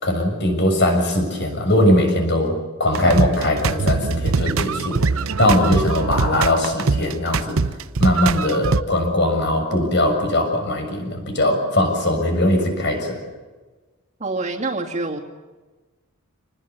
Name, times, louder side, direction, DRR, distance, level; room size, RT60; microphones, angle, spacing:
voice 1, 0.0-5.1 5.4-7.6 8.0-13.2, left 1 dB, 50° left, 4 dB, 6.7 m, -20 dB
sound 1, 2.9-8.8, right 4 dB, 65° right, 0.7 m, -22 dB
voice 2, 14.2-15.2, right 3 dB, 30° right, 1 dB, 2.5 m, -26 dB
26.5 x 20.5 x 8.4 m, 1.3 s
head